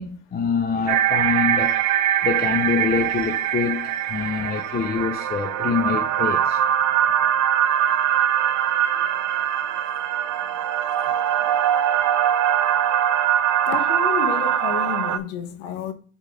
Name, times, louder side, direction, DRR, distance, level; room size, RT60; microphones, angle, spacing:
voice 1, 0.0-1.8 2.2-6.6, left 6 dB, 25° left, 0.6 m, -25 dB
sound 1, 0.9-15.2, right 10 dB, 50° right, 0.6 m, -22 dB
voice 2, 13.7-15.9, left 9 dB, 80° left, 1.1 m, -29 dB
8.2 x 3.7 x 3.5 m
supercardioid pair, 110°, 39 cm